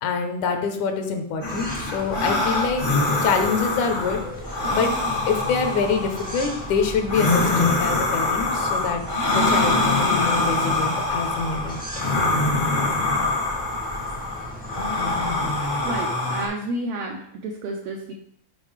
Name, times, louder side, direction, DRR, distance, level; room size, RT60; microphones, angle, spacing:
voice 1, 0.0-2.8 3.2-4.2 4.7-4.9 5.3-9.0 9.3-11.8, left 5 dB, 80° left, 6 dB, 2.2 m, -25 dB
sound 1, 1.4-16.5, left 2 dB, 55° left, 0.5 m, -24 dB
sound 2, 1.5-16.0, equal, 10° right, 0.5 m, -38 dB
voice 2, 15.8-18.1, right 2 dB, 85° right, 2 dB, 1.4 m, -31 dB
7.2 x 5.6 x 3.2 m, 0.68 s
omnidirectional pair, 3.6 m